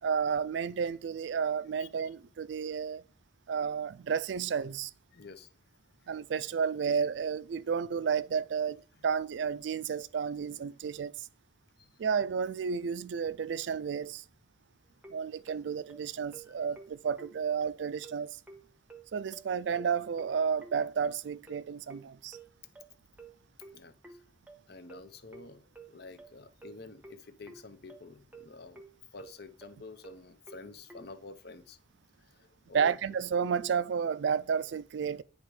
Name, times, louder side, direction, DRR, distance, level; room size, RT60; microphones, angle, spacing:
voice 1, 0.0-3.0 3.5-4.9 6.1-11.3 12.0-14.2 15.1-18.4 19.1-22.4 32.7-35.2, right 6 dB, 70° right, 0.4 m, -32 dB
voice 2, 5.1-5.5 11.8-11.9 16.5-16.6 23.7-24.2 24.7-28.9 29.1-31.8 32.3-33.2, left 3 dB, 60° left, 0.7 m, -49 dB
sound 1, 15.0-31.1, right 3 dB, 10° right, 0.7 m, -52 dB
9.4 x 3.6 x 4.8 m
head